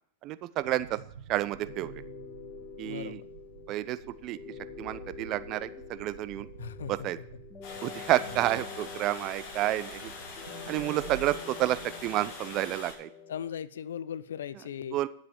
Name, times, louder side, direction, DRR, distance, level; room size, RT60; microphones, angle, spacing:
voice 1, 0.2-1.0 1.3-1.9 2.8-3.2 3.7-4.4 4.8-6.5 6.9-7.2 7.8-10.1 10.7-13.1 14.9-15.1, right 15 dB, 45° right, 15 dB, 0.7 m, -30 dB
sound 1, 0.6-12.9, right 8 dB, 75° right, 1.2 m, -49 dB
sound 2, 1.5-13.5, left 7 dB, 25° left, 2.3 m, -46 dB
voice 2, 2.8-3.3 6.6-7.1 8.3-8.4 13.3-15.1, left 9 dB, 75° left, 16 dB, 0.7 m, -38 dB
Water, 7.6-12.9, left 4 dB, 50° left, 6.6 m, -44 dB
11.5 x 7.6 x 7.1 m, 0.66 s
hypercardioid pair, 100°, 0 cm